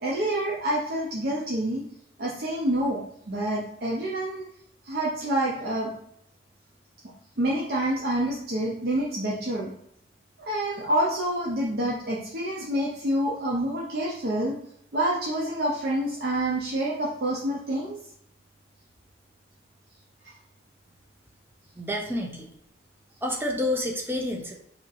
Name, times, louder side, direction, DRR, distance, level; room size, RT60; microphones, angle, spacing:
voice 1, 0.0-1.8 2.2-3.0 3.3-4.5 4.9-5.9 7.4-9.7 10.5-14.6 14.9-18.0, right 1 dB, 55° right, -5 dB, 0.6 m, -27 dB
voice 2, 21.8-22.5 23.2-24.5, left 1 dB, 10° right, 1 dB, 0.5 m, -29 dB
2.9 x 2.6 x 4.0 m, 0.72 s
head